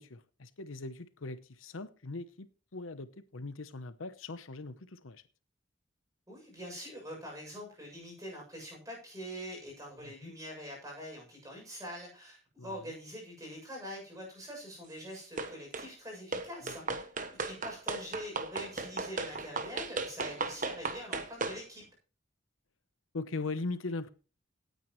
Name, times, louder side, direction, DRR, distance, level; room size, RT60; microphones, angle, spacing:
voice 1, 0.0-5.2 10.0-10.3 12.6-13.0 16.6-17.0 23.1-24.1, left 3 dB, 85° left, 0.9 m, -40 dB
voice 2, 6.3-16.9 17.3-21.8, equal, 15° right, 7.3 m, -44 dB
sound 1, 15.4-15.9 16.3-21.6, right 3 dB, 40° right, 1.1 m, -36 dB
17.5 x 9.3 x 3.2 m
head